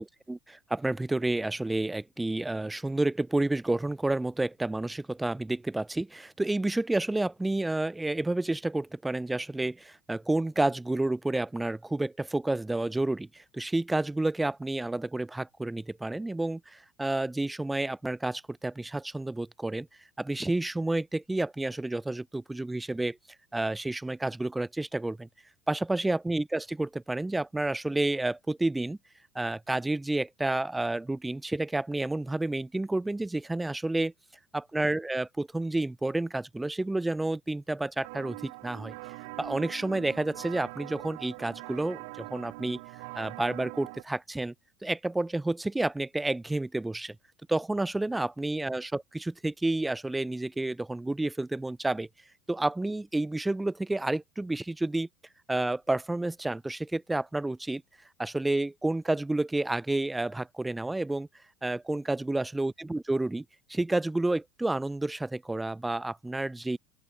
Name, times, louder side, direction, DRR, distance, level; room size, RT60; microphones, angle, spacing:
voice 1, 0.0-19.9 20.2-23.2 23.5-25.3 25.7-29.0 29.3-34.1 34.5-38.9 39.4-42.8 43.1-44.5 44.8-47.2 47.5-52.1 52.5-55.1 55.5-57.8 58.2-61.3 61.6-66.8, right 2 dB, 10° right, 0.9 m, -30 dB
sound 1, 38.0-44.0, right 27 dB, 60° right, 1.1 m, -43 dB
open air
figure-of-eight pair, 75°, 0 cm